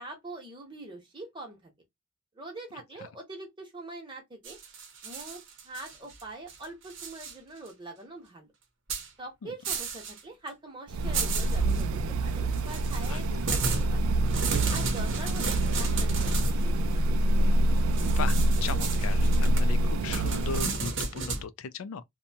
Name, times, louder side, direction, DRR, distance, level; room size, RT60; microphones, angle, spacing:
voice 1, 0.0-1.7 2.3-4.6 5.0-8.5 9.2-14.2 14.7-17.2, right 2 dB, 25° right, 0.9 m, -44 dB
sound 1, 4.4-6.2 6.5-7.3 7.7-7.8 8.9-9.1 9.6-10.2 10.5-10.6 11.1-11.8 12.5-16.6 18.0-21.4, right 4 dB, 60° right, 0.7 m, -34 dB
sound 2, 10.9-20.7, right 1 dB, 90° right, 0.3 m, -26 dB
voice 2, 18.0-22.0, left 6 dB, 80° left, 0.4 m, -37 dB
2.6 x 2.2 x 2.7 m
head